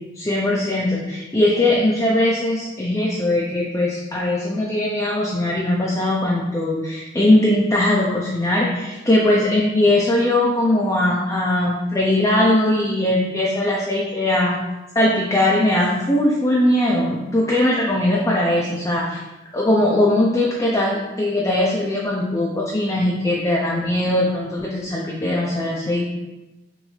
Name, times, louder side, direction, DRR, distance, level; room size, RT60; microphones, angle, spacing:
voice 1, 0.1-14.5 14.9-19.2 19.5-26.1, left 1 dB, 15° left, -4 dB, 0.5 m, -20 dB
6.2 x 2.6 x 3.2 m, 1.1 s
head